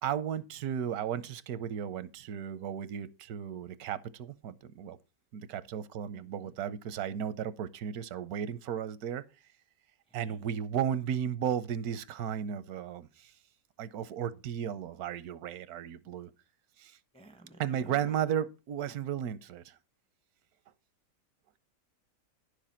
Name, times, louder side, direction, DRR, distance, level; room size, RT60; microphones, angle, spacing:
voice 1, 0.0-5.0 5.3-9.2 10.1-13.3 13.8-16.3 16.8-17.0 17.6-19.7, right 9 dB, 85° right, 1.2 m, -34 dB
voice 2, 17.1-18.3, right 2 dB, 10° left, 0.4 m, -52 dB
10.5 x 6.7 x 4.3 m
omnidirectional pair, 1.6 m